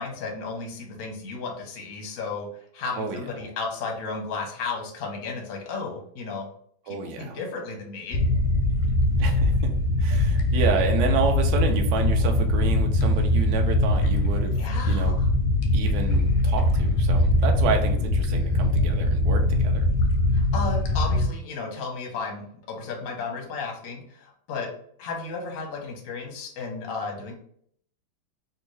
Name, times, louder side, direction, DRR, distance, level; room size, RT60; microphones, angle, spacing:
voice 1, 0.0-6.5 6.8-8.2 14.6-15.3 20.3-24.7 25.0-27.3, left 4 dB, 55° left, 0 dB, 1.0 m, -34 dB
voice 2, 6.9-7.4 9.2-9.7 10.0-14.5 14.8-15.2 15.7-19.9, right 5 dB, 70° right, 4 dB, 1.0 m, -29 dB
sound 1, 8.1-21.3, left 1 dB, 85° left, 1.4 m, -22 dB
3.5 x 2.6 x 3.1 m, 0.62 s
omnidirectional pair, 2.3 m